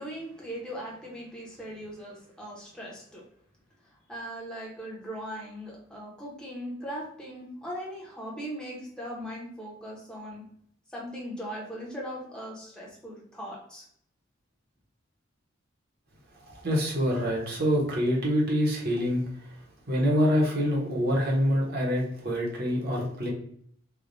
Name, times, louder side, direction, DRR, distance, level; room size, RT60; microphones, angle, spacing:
voice 1, 0.0-3.2 4.1-10.4 10.9-13.9, equal, 5° left, -5 dB, 1.0 m, -39 dB
voice 2, 16.5-19.2 19.9-23.3, equal, 50° right, -2 dB, 1.1 m, -26 dB
3.4 x 2.5 x 3.9 m, 0.66 s
head